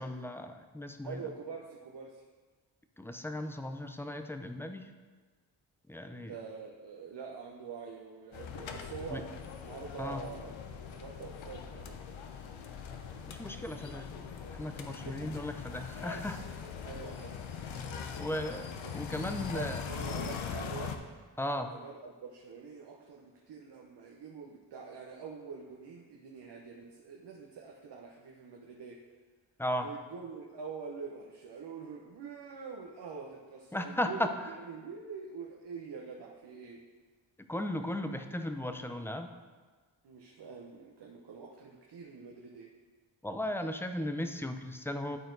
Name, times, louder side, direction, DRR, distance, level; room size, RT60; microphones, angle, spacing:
voice 1, 0.0-1.3 3.0-4.9 5.9-6.3 9.1-9.2 10.0-10.2 13.3-14.1 14.5-16.4 18.2-18.7 18.9-19.8 21.4-21.7 29.6-29.9 33.7-34.5 37.5-39.3 43.2-45.2, left 1 dB, 5° left, 6 dB, 0.7 m, -36 dB
voice 2, 1.0-2.2 6.1-9.3 9.6-10.6 10.9-12.1 14.9-15.3 16.8-17.5 19.3-21.0 21.6-29.0 29.8-34.3 34.6-36.8 40.0-42.7, right 5 dB, 60° right, 0 dB, 1.0 m, -45 dB
sound 1, 8.3-21.0, left 7 dB, 80° left, 0.8 m, -41 dB
12.5 x 4.3 x 3.9 m, 1.4 s
cardioid pair, 50°, 46 cm